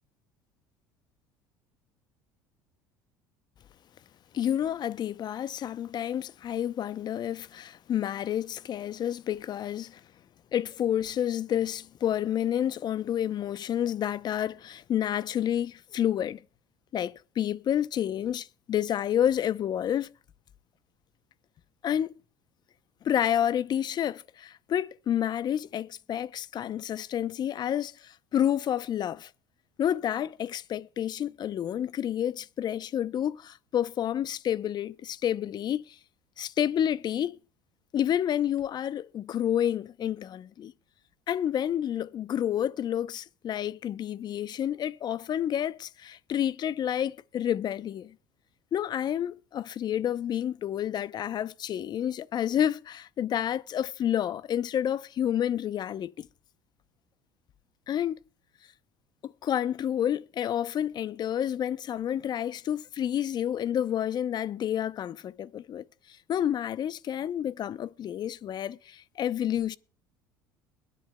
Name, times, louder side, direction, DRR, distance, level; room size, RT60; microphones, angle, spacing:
voice 1, 4.3-10.0 10.5-16.4 16.9-20.1 21.8-22.1 23.0-29.3 29.8-36.0 36.4-37.4 37.9-40.7 41.3-48.1 48.7-56.3 57.9-58.2 59.2-69.8, left 10 dB, 45° left, 0.6 m, -29 dB
21.5 x 10.5 x 2.2 m
hypercardioid pair, 70°, 10 cm